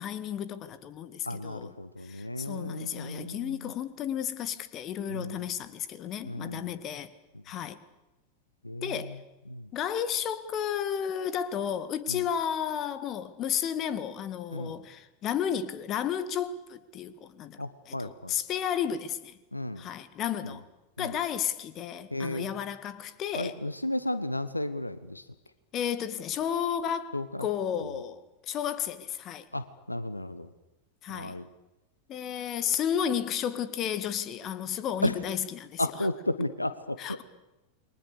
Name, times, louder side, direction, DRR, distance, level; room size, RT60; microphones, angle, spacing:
voice 1, 0.0-1.7 2.0-7.1 7.5-7.8 8.8-9.2 9.7-17.6 17.9-19.4 19.8-20.6 21.0-23.6 25.7-29.5 31.0-31.4 32.1-36.1 37.0-37.2, left 9 dB, 35° left, 1.9 m, -32 dB
voice 2, 1.2-3.7 5.1-5.5 6.2-6.7 8.6-9.2 9.5-9.7 12.1-12.3 14.5-14.7 17.6-18.4 19.5-19.9 20.4-20.6 21.0-21.2 22.1-22.5 23.3-25.2 27.1-27.5 27.8-28.0 29.5-30.5 31.1-31.5 35.0-35.2 35.8-37.2, left 1 dB, 85° left, 1.2 m, -34 dB
29.0 x 23.0 x 6.9 m
figure-of-eight pair, 85°, 0 cm